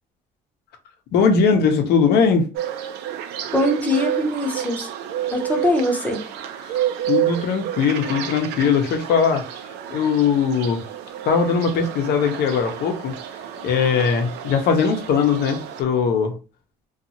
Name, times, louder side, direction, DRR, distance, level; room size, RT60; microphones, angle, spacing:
voice 1, 1.1-2.5 7.1-9.4 9.9-10.8 11.2-13.1 13.6-16.3, left 6 dB, 75° left, 0.7 m, -20 dB
sound 1, 2.5-15.8, right 11 dB, 85° right, 0.4 m, -30 dB
voice 2, 3.5-4.9 5.3-6.2, left 1 dB, 10° left, 0.7 m, -22 dB
2.6 x 2.3 x 2.7 m
cardioid pair, 110°, 17 cm